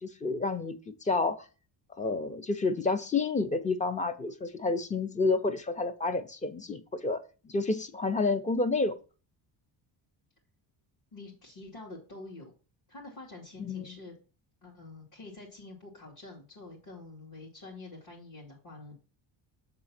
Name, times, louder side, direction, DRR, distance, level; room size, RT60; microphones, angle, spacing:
voice 1, 0.0-1.4 2.0-8.9 13.6-14.0, left 3 dB, 15° left, 11 dB, 0.6 m, -30 dB
voice 2, 11.1-12.5 12.9-14.1 14.6-19.0, left 2 dB, 45° left, -6 dB, 2.4 m, -47 dB
7.1 x 3.8 x 5.8 m, 0.35 s
cardioid pair, 155°, 46 cm